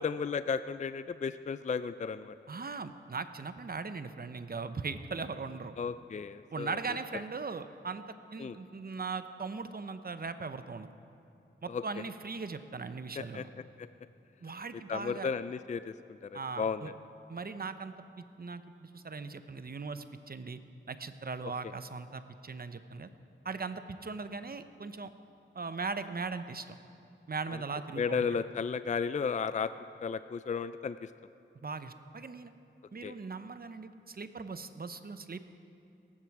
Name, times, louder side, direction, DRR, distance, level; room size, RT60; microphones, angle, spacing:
voice 1, 0.0-2.3 5.8-6.8 8.4-8.6 11.7-11.8 13.2-13.4 13.8-13.9 14.9-16.9 27.5-27.6 28.0-29.7 30.0-31.1 33.0-33.1, left 5 dB, 35° left, 13 dB, 0.4 m, -34 dB
voice 2, 2.5-5.7 6.5-8.0 8.3-10.9 11.6-13.5 14.4-15.3 16.3-16.9 17.3-20.6 20.9-23.1 23.4-25.1 25.5-26.7 27.3-28.3 31.5-32.5 32.9-35.4, right 4 dB, 45° right, 10 dB, 0.8 m, -39 dB
18.5 x 15.0 x 4.8 m, 2.7 s
wide cardioid pair, 75°, 21 cm